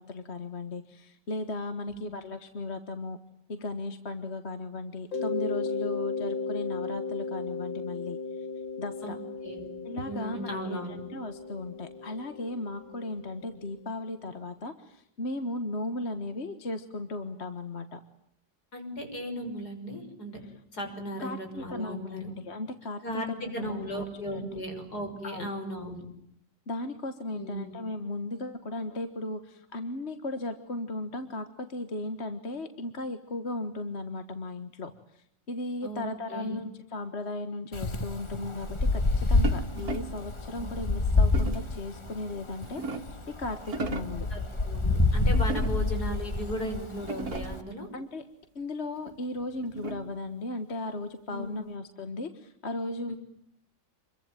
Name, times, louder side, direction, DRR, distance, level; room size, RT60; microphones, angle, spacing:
voice 1, 0.0-3.2 3.5-8.5 8.8-9.2 9.9-10.8 11.1-18.0 21.2-23.0 23.4-24.0 24.3-24.5 25.2-25.5 26.7-43.1 43.4-44.3 47.9-48.2 48.6-53.1, left 2 dB, 40° left, 9 dB, 1.7 m, -36 dB
Mallet percussion, 5.1-13.7, left 4 dB, 85° left, 4.3 m, -35 dB
voice 2, 10.1-11.0 18.7-20.4 20.7-22.3 23.0-26.1 27.3-27.8 35.8-36.6 40.6-41.0 44.3-47.9 51.3-51.7 53.1-53.2, equal, 55° left, 5 dB, 6.6 m, -37 dB
Wind, 37.7-47.6, left 3 dB, 20° left, 1.2 m, -28 dB
sound 1, 39.4-40.3 41.3-41.8 42.4-43.2 43.6-44.3 45.3-46.0 46.6-46.7 47.0-47.7 49.1-50.2, right 3 dB, 55° right, 2.4 m, -37 dB
28.0 x 23.0 x 9.0 m, 0.72 s
omnidirectional pair, 2.0 m